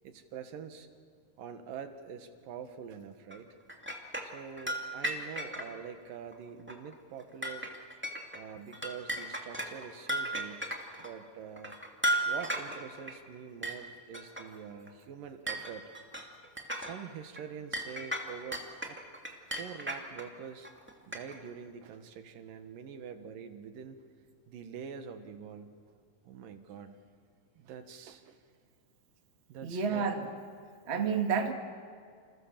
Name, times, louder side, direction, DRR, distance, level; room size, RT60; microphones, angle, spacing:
voice 1, 0.0-0.9 1.4-3.5 4.2-7.7 8.3-11.7 12.3-15.8 16.8-19.0 19.5-20.7 21.1-24.0 24.5-25.8 26.2-27.0 27.6-28.4 29.5-30.1, right 7 dB, 80° right, 8 dB, 3.1 m, -45 dB
sound 1, 3.3-5.7 6.3-6.4 6.7-6.9 7.2-8.4 8.7-11.1 11.6-13.1 13.6-13.8 14.1-14.4 14.9-15.0 15.5-17.0 17.4-17.5 17.7-20.2 20.6-21.5, right 1 dB, 5° right, 1.8 m, -35 dB
voice 2, 29.6-30.3 30.9-31.5, right 6 dB, 25° right, 4 dB, 1.6 m, -30 dB
28.5 x 28.0 x 7.4 m, 2.1 s
omnidirectional pair, 3.9 m